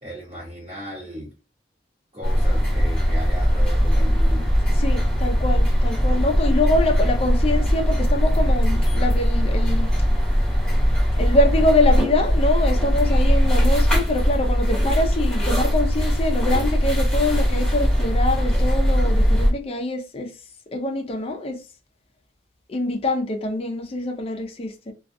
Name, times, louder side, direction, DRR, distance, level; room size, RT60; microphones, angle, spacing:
voice 1, 0.0-1.3 2.1-4.6, equal, 30° right, 1.0 m, -36 dB
sound 1, 2.2-19.5, equal, 5° left, 0.9 m, -20 dB
voice 2, 4.8-9.9 11.2-20.3 20.7-21.6 22.7-24.9, left 2 dB, 35° left, 0.4 m, -24 dB
2.3 x 2.2 x 2.5 m
head